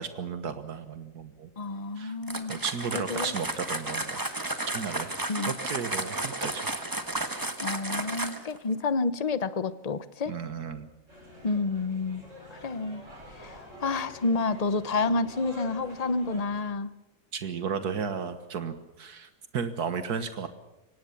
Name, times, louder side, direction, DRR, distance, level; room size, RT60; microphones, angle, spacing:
voice 1, 0.0-1.5 2.0-2.2 2.5-4.2 4.7-5.1 5.5-6.7 10.3-10.9 17.3-20.5, right 6 dB, 80° right, 10 dB, 1.9 m, -34 dB
voice 2, 1.6-2.6 2.9-3.3 5.3-5.5 7.6-10.4 11.4-12.2 12.5-13.0 13.3-16.9, left 3 dB, 30° left, 14 dB, 0.9 m, -29 dB
sound 1, 2.2-8.6, right 1 dB, 15° right, 1.5 m, -33 dB
sound 2, 11.1-16.6, left 1 dB, 50° right, 8.0 m, -47 dB
24.0 x 18.5 x 7.1 m, 1.0 s
omnidirectional pair, 1.6 m